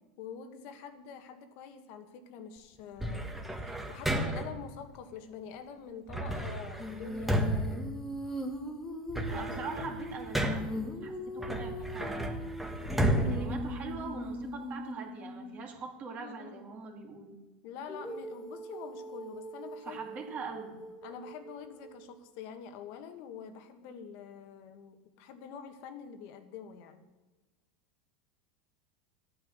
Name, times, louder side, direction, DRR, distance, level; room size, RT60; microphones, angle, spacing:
voice 1, 0.2-3.3 3.6-7.8 16.2-16.7 17.6-20.2 21.0-27.0, left 7 dB, 60° left, 8 dB, 1.6 m, -46 dB
sound 1, 3.0-4.6 6.1-8.6 8.9-10.9 11.4-14.4, right 1 dB, 5° right, 1.5 m, -33 dB
Female singing, 6.8-15.7 17.9-22.1, left 1 dB, 10° left, 1.8 m, -41 dB
voice 2, 9.3-12.4 13.3-17.4 19.8-20.7, right 5 dB, 35° right, 1 dB, 2.4 m, -42 dB
12.5 x 9.2 x 6.4 m, 1.2 s
supercardioid pair, 115°, 4 cm